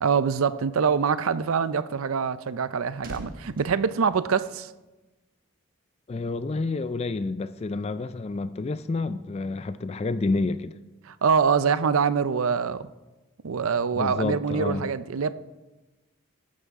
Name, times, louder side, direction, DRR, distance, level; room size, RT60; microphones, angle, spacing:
voice 1, 0.0-4.7 11.1-12.9 13.4-15.3, right 6 dB, 75° right, 0.5 m, -24 dB
sound 1, 2.5-5.0 5.2-5.5, right 1 dB, 40° right, 1.6 m, -45 dB
voice 2, 6.1-10.8 13.9-14.9, left 3 dB, 30° left, 0.3 m, -29 dB
14.0 x 11.5 x 3.6 m
head